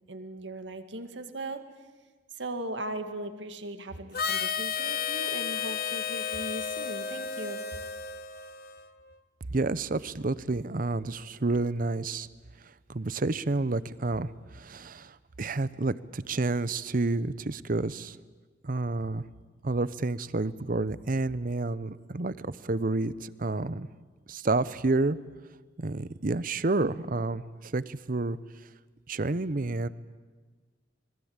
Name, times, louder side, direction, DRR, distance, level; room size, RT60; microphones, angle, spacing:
voice 1, 0.1-1.6 2.3-7.6, right 1 dB, 70° right, 8 dB, 2.1 m, -38 dB
Harmonica, 4.1-8.9, left 7 dB, 50° left, 1.1 m, -32 dB
voice 2, 9.5-12.3 12.9-18.2 18.6-19.2 19.6-23.9 24.3-25.2 25.8-28.4 29.1-29.9, right 2 dB, 45° right, 17 dB, 0.7 m, -29 dB
26.0 x 21.5 x 8.9 m, 1.3 s
head